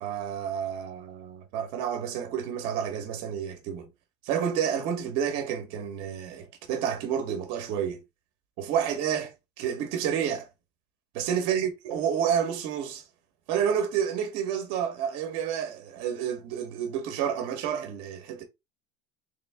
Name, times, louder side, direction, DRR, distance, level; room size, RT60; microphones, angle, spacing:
voice 1, 0.0-3.9 4.2-8.0 8.6-10.5 11.1-13.0 13.5-18.4, right 8 dB, 55° right, 1.3 m, -30 dB
3.6 x 3.4 x 3.5 m
supercardioid pair, 150°, 11 cm